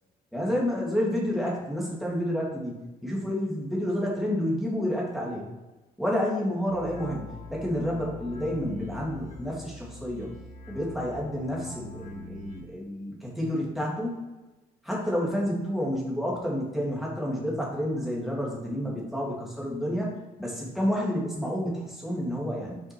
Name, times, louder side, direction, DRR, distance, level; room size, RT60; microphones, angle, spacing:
voice 1, 0.3-5.5 6.0-10.3 10.7-14.2 14.8-22.8, equal, ahead, -4 dB, 2.3 m, -30 dB
sound 1, 6.7-12.6, left 2 dB, 40° left, 1.4 m, -44 dB
5.9 x 5.5 x 4.5 m, 1.1 s
cardioid pair, 120°, 17 cm